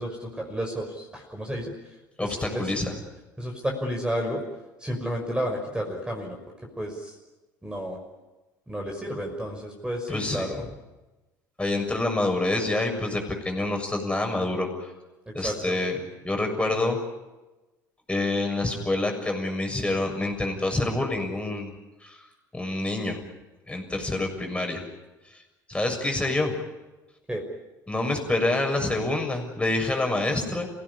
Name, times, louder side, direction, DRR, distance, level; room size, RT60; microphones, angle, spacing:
voice 1, 0.0-1.7 2.2-2.7 3.4-4.4 4.8-6.4 6.8-7.2 7.6-8.0 8.7-10.6 15.3-15.8 27.3-27.4, equal, 10° right, 1 dB, 5.8 m, -31 dB
voice 2, 2.2-2.9 10.1-10.5 11.6-14.9 15.3-16.0 16.2-17.0 18.1-21.7 22.0-22.2 22.5-23.2 23.7-24.8 25.3-25.4 25.7-26.5 27.9-30.7, left 2 dB, 10° left, 3 dB, 6.9 m, -27 dB
28.0 x 17.0 x 9.9 m, 1.1 s
hypercardioid pair, 65°, 10 cm